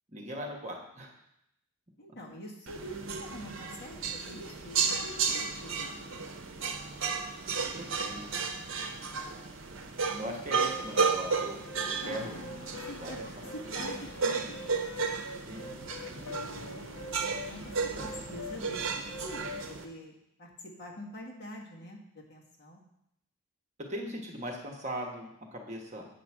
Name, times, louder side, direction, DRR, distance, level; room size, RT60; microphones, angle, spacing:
voice 1, 0.1-1.2 7.7-8.3 10.2-11.6 11.8-12.4 13.0-14.3 15.5-15.8 16.1-16.4 17.9-18.2 23.9-26.1, equal, 30° right, 0 dB, 1.2 m, -40 dB
voice 2, 2.0-6.3 10.0-10.4 12.7-14.6 17.5-22.8, equal, 50° left, -2 dB, 1.8 m, -45 dB
sound 1, 2.7-19.8, right 5 dB, 60° right, 0.9 m, -34 dB
sound 2, 10.3-19.7, left 2 dB, 70° left, 0.8 m, -44 dB
8.6 x 5.1 x 6.1 m, 0.79 s
head